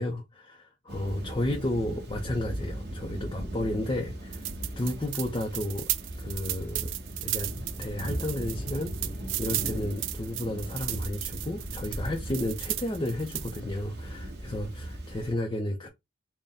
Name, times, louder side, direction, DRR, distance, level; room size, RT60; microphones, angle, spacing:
voice 1, 0.0-4.4 4.8-5.9 6.2-6.9 7.2-7.5 7.8-8.9 9.3-15.9, left 1 dB, 25° left, 0.6 m, -32 dB
Thunder / Rain, 0.9-15.3, right 1 dB, 55° right, 1.1 m, -38 dB
sound 1, 4.3-13.6, right 16 dB, 75° right, 0.3 m, -35 dB
4.0 x 2.2 x 3.5 m
head